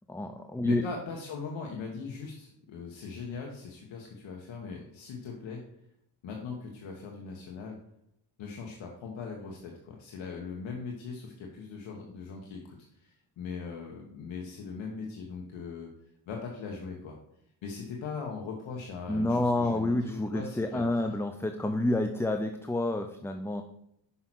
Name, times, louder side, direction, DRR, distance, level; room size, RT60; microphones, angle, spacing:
voice 1, 0.1-0.8 19.1-23.6, left 2 dB, 5° left, 6 dB, 0.4 m, -29 dB
voice 2, 0.6-5.6 6.2-7.8 8.4-15.9 16.3-17.2 17.6-21.0, left 5 dB, 80° left, 0 dB, 1.3 m, -40 dB
5.7 x 5.6 x 6.1 m, 0.75 s
cardioid pair, 105°, 45 cm